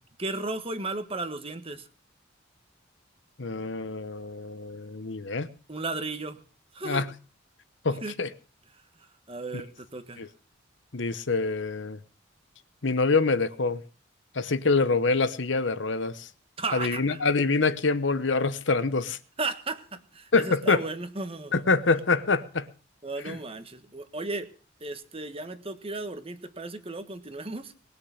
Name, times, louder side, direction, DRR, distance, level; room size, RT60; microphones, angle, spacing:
voice 1, 0.2-1.9 5.7-6.4 6.7-7.0 8.0-8.1 9.3-10.2 16.6-17.2 19.4-21.6 23.0-24.5 24.8-27.7, right 3 dB, 30° right, 1.5 m, -35 dB
voice 2, 3.4-5.5 6.8-7.1 7.8-8.3 10.2-10.3 10.9-12.0 12.8-13.8 14.3-16.3 16.7-19.2 20.3-20.8 21.5-22.7 23.3-23.4, left 3 dB, 70° left, 1.0 m, -25 dB
20.5 x 6.8 x 8.1 m
head